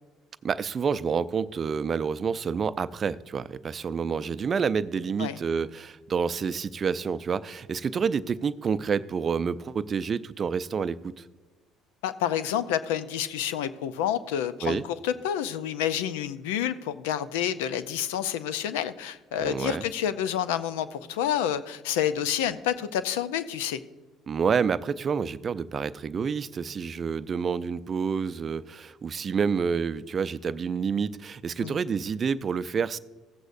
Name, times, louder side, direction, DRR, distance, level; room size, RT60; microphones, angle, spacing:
voice 1, 0.4-11.2 14.6-14.8 19.4-19.8 24.3-33.0, right 6 dB, 40° right, 15 dB, 0.4 m, -28 dB
voice 2, 12.0-23.8 31.6-31.8, left 10 dB, 85° left, 13 dB, 0.5 m, -29 dB
16.0 x 8.0 x 2.6 m, 1.2 s
hypercardioid pair, 70°, 0 cm